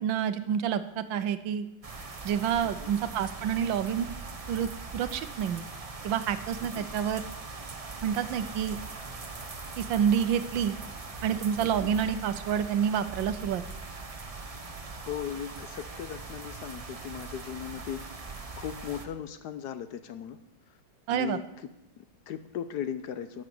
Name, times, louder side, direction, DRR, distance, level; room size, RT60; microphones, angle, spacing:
voice 1, 0.0-1.7 2.2-4.1 4.5-5.7 6.0-7.2 8.0-8.8 9.8-10.8 11.2-13.6 21.1-21.4, right 8 dB, 80° right, 12 dB, 1.5 m, -28 dB
sound 1, 1.8-19.1, right 3 dB, 30° right, 0.6 m, -41 dB
voice 2, 2.6-2.9 6.6-6.9 11.6-11.9 14.7-20.4 20.7-20.8 21.1-23.4, left 9 dB, 70° left, 11 dB, 1.2 m, -38 dB
12.5 x 7.3 x 6.9 m, 0.90 s
omnidirectional pair, 2.1 m